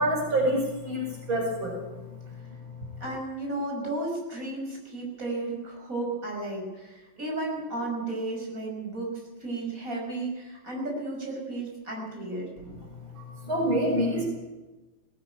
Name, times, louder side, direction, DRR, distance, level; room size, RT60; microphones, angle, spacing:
voice 1, 0.0-2.0 2.3-2.4 2.7-2.8 13.2-14.3, right 1 dB, 85° right, 1 dB, 5.6 m, -27 dB
voice 2, 3.0-12.5, right 2 dB, 40° right, -1 dB, 6.6 m, -33 dB
19.0 x 18.0 x 9.0 m, 1.2 s
omnidirectional pair, 2.2 m